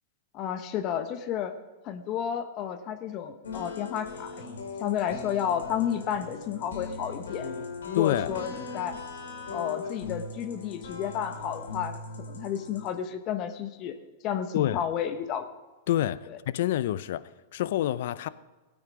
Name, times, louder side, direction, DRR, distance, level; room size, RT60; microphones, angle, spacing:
voice 1, 0.3-1.5 1.8-4.5 4.8-7.5 7.9-8.9 9.5-11.9 12.3-14.0 14.2-15.4, left 9 dB, 40° left, 9 dB, 0.9 m, -31 dB
sound 1, 3.4-12.9, left 4 dB, 90° left, 2.3 m, -39 dB
voice 2, 7.9-8.3 14.5-14.8 15.9-16.2 16.5-18.3, left 12 dB, 65° left, 17 dB, 0.5 m, -27 dB
16.5 x 8.8 x 5.1 m, 1.2 s
hypercardioid pair, 115°, 0 cm